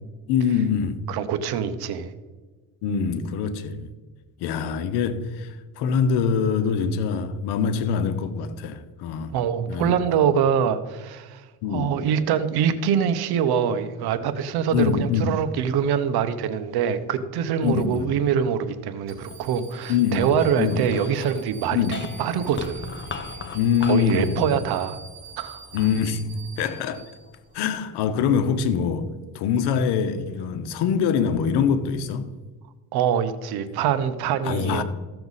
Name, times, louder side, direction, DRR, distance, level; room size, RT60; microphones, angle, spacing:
voice 1, 0.3-1.0 2.8-3.9 4.4-9.3 9.7-10.2 11.6-11.9 14.7-15.3 17.6-18.1 19.9-20.3 20.6-20.8 21.7-21.9 23.5-24.5 25.7-26.2 26.6-27.0 27.5-29.1 29.3-32.3 34.4-34.8, left 7 dB, 90° left, 1.0 m, -24 dB
voice 2, 1.1-2.1 9.3-22.9 23.9-25.0 25.4-25.7 32.9-34.8, right 8 dB, 75° right, 1.0 m, -24 dB
sound 1, 19.1-27.6, right 6 dB, 35° right, 3.5 m, -46 dB
sound 2, 19.2-27.7 28.3-29.0, left 4 dB, 30° left, 1.0 m, -40 dB
15.0 x 6.8 x 4.1 m
cardioid pair, 105°, 38 cm